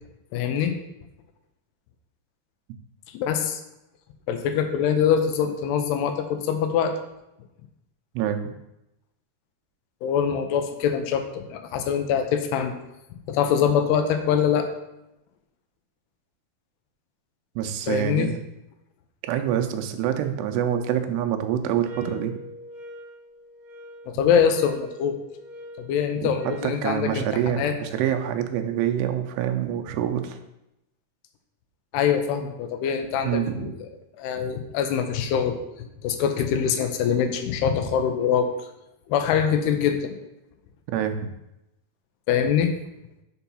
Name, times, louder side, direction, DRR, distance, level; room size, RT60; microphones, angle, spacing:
voice 1, 0.3-0.8 3.1-3.6 4.3-6.9 10.0-12.7 13.3-14.7 17.9-18.3 24.1-25.2 25.8-27.7 31.9-33.9 34.2-35.6 36.0-38.5 39.1-40.1 42.3-42.7, left 8 dB, 85° left, 7 dB, 2.7 m, -24 dB
voice 2, 8.2-8.5 17.6-18.4 19.3-22.3 26.2-26.3 26.6-30.4 33.2-33.7 40.9-41.3, right 9 dB, 90° right, 6 dB, 2.8 m, -26 dB
sound 1, 21.8-26.7, right 1 dB, 50° right, 1.8 m, -43 dB
6.8 x 4.5 x 5.5 m, 0.88 s
omnidirectional pair, 4.7 m